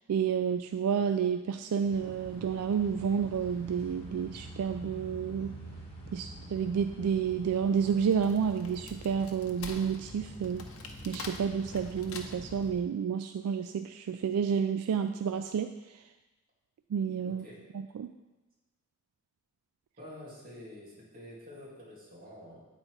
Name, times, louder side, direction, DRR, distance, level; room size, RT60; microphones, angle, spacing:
voice 1, 0.1-5.5 6.1-10.7 11.0-15.7 16.9-17.4 17.9-18.1, right 7 dB, 80° right, 9 dB, 0.3 m, -30 dB
sound 1, 1.8-12.7, right 1 dB, 25° left, 1.7 m, -46 dB
Wood, 7.9-12.6, left 5 dB, 65° left, 0.8 m, -46 dB
voice 2, 17.3-17.6 20.0-22.6, left 1 dB, 40° right, -5 dB, 2.2 m, -48 dB
8.8 x 4.1 x 4.6 m, 1.1 s
head